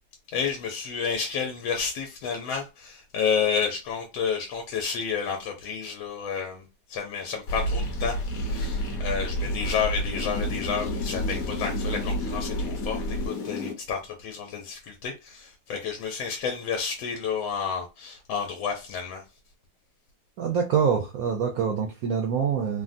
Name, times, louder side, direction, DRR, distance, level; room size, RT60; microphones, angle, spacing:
voice 1, 0.3-6.6 6.9-19.2, left 6 dB, 90° left, 1.4 m, -30 dB
sound 1, 7.5-13.7, left 1 dB, 60° left, 1.0 m, -29 dB
voice 2, 20.4-22.8, right 7 dB, 75° right, 0.8 m, -25 dB
3.5 x 2.1 x 2.5 m
omnidirectional pair, 2.1 m